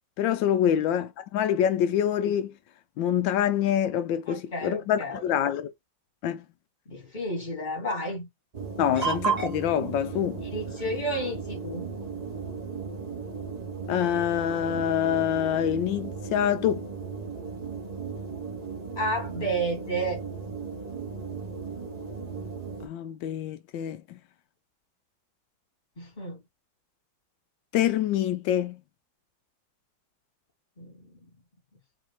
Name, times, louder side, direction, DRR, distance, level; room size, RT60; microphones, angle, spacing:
voice 1, 0.2-2.5 3.0-5.7 6.2-6.4 8.8-10.4 13.9-16.8 22.8-24.0 27.7-28.8, left 10 dB, 75° left, 1.2 m, -26 dB
voice 2, 4.3-5.2 6.9-8.3 10.4-11.9 19.0-20.2 26.0-26.4 30.8-31.3, right 1 dB, 25° left, 1.7 m, -32 dB
sound 1, 8.5-22.9, right 5 dB, 75° right, 0.3 m, -35 dB
4.0 x 2.7 x 3.0 m
omnidirectional pair, 2.2 m